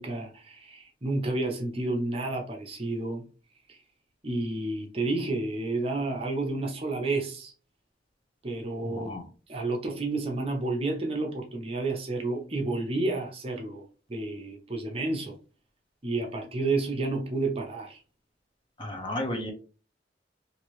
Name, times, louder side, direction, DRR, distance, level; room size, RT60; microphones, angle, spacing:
voice 1, 0.0-3.2 3.7-3.8 4.2-7.5 8.4-9.1 9.5-15.4 16.0-18.0, right 2 dB, 30° right, 0.6 m, -30 dB
voice 2, 8.9-9.2 18.8-19.5, left 1 dB, 25° left, 0.6 m, -33 dB
2.9 x 2.6 x 3.0 m
head